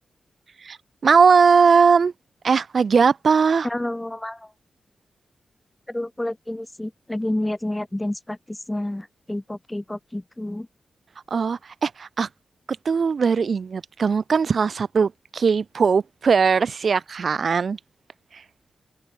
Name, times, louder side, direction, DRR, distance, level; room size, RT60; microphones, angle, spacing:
voice 1, 1.0-2.1 2.4-3.7 11.3-12.3 12.9-17.8 18.3-18.4, right 5 dB, 60° right, 0.5 m, -19 dB
voice 2, 3.6-4.5 5.9-10.7, left 1 dB, 15° left, 2.0 m, -29 dB
cardioid pair, 80°, 0 cm